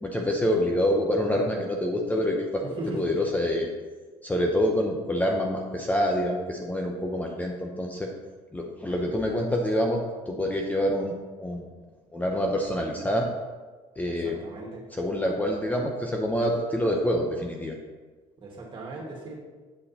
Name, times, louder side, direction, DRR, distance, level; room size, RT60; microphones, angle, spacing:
voice 1, 0.0-3.7 4.2-8.1 8.5-11.1 11.4-11.6 12.1-13.3 14.0-14.4 15.0-17.7, equal, 10° left, 1 dB, 0.8 m, -26 dB
voice 2, 2.6-3.1 8.9-9.0 14.0-14.8 18.4-19.4, right 2 dB, 40° right, -1 dB, 2.3 m, -38 dB
8.6 x 5.3 x 4.3 m, 1.4 s
cardioid pair, 115°, 13 cm